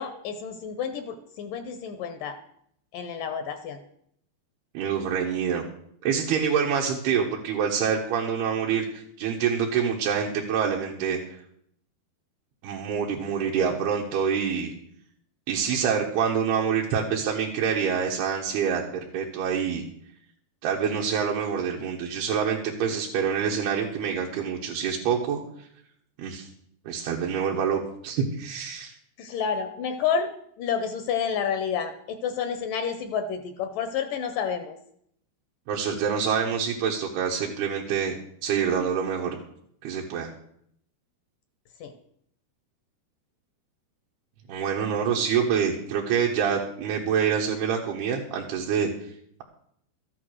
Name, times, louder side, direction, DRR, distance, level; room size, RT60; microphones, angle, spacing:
voice 1, 0.0-2.4 2.9-3.8 29.2-30.3 30.6-34.8 41.8-41.9, left 7 dB, 70° left, 8 dB, 2.2 m, -29 dB
voice 2, 4.7-5.6 6.0-11.4 12.6-14.7 15.5-19.8 20.6-25.4 26.2-26.5 26.9-28.9 35.7-38.1 38.4-39.4 39.8-40.3 44.5-49.1, right 7 dB, 90° right, -1 dB, 3.4 m, -26 dB
13.5 x 9.8 x 6.4 m, 0.69 s
omnidirectional pair, 4.5 m